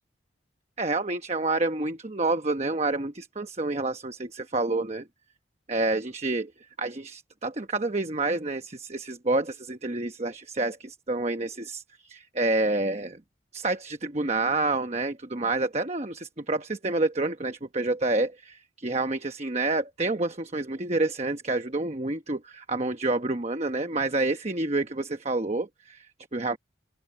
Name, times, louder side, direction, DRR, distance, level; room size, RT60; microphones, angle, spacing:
voice 1, 0.8-5.1 5.7-6.5 6.8-13.2 13.5-26.6, right 2 dB, 35° right, 1.0 m, -28 dB
open air
head